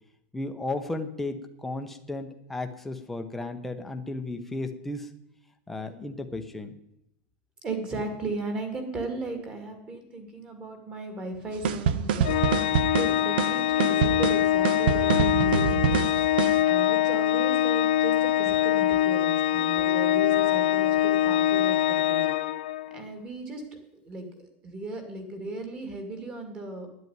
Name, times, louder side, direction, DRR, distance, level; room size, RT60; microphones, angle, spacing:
voice 1, 0.3-5.1 5.7-6.8, left 2 dB, 5° left, 5 dB, 0.8 m, -34 dB
voice 2, 7.6-16.1 16.7-22.3 22.9-23.6 24.0-26.9, right 2 dB, 15° right, 5 dB, 2.1 m, -36 dB
sound 1, 11.6-16.6, right 7 dB, 65° right, 0.9 m, -26 dB
Organ, 12.2-23.0, left 12 dB, 70° left, 0.6 m, -24 dB
10.5 x 8.4 x 9.3 m, 0.81 s
supercardioid pair, 180°, 6 cm